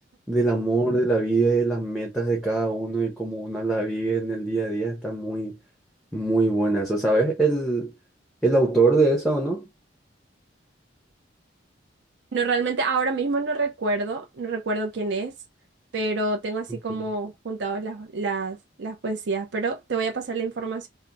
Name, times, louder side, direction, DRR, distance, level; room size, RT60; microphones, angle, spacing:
voice 1, 0.3-5.6 6.1-7.9 8.4-9.7, right 3 dB, ahead, 0.6 m, -23 dB
voice 2, 12.3-15.3 15.9-20.9, right 3 dB, 65° right, 0.5 m, -27 dB
2.8 x 2.1 x 2.5 m
head